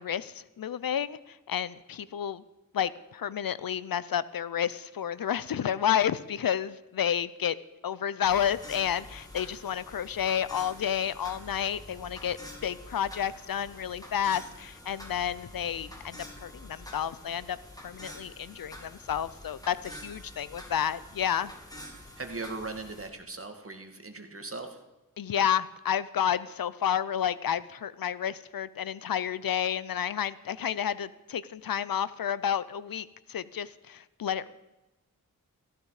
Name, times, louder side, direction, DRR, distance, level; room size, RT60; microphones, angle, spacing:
voice 1, 0.0-2.4 2.7-7.5 7.8-12.4 12.6-17.6 17.8-21.5 25.2-34.5, left 9 dB, 85° left, 17 dB, 0.6 m, -30 dB
sound 1, 8.2-23.1, left 1 dB, 10° left, 2.6 m, -47 dB
voice 2, 22.2-24.8, right 3 dB, 40° right, 5 dB, 2.0 m, -39 dB
15.0 x 14.5 x 4.9 m, 1.1 s
wide cardioid pair, 65°, 34 cm